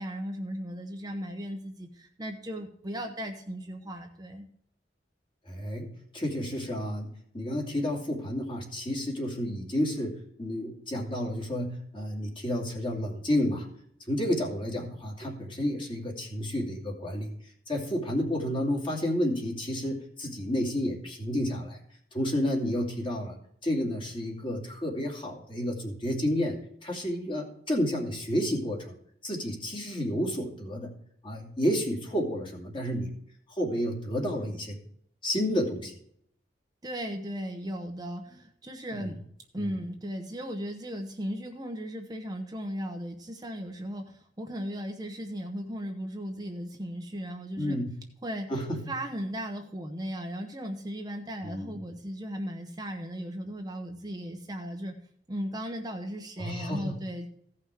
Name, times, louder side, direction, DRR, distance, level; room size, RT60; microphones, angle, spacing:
voice 1, 0.0-4.5 36.8-39.2 39.5-47.8 48.2-48.5 48.8-55.0 55.3-57.3, equal, 25° right, 3 dB, 0.9 m, -36 dB
voice 2, 5.5-13.7 14.1-17.3 17.7-21.8 22.1-23.4 23.6-29.0 29.2-30.9 31.2-33.1 33.6-34.8 35.2-35.9 39.0-39.1 39.6-39.7 47.6-47.9 48.5-48.8 51.4-51.7 56.4-56.9, equal, 30° left, -1 dB, 2.5 m, -31 dB
15.5 x 5.7 x 4.7 m, 0.67 s
head